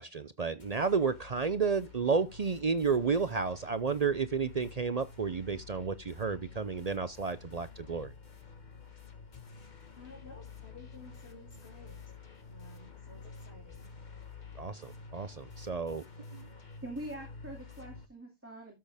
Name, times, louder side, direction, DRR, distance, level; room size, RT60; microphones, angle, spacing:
voice 1, 0.0-8.1 14.6-16.0 16.3-16.5, right 5 dB, 45° right, 0.7 m, -31 dB
sound 1, 0.6-18.1, left 4 dB, 45° left, 1.6 m, -50 dB
voice 2, 10.0-12.0 12.5-13.9, left 3 dB, 70° left, 2.7 m, -54 dB
voice 3, 16.8-18.8, right 1 dB, 10° right, 2.4 m, -43 dB
13.0 x 6.5 x 3.5 m
omnidirectional pair, 1.1 m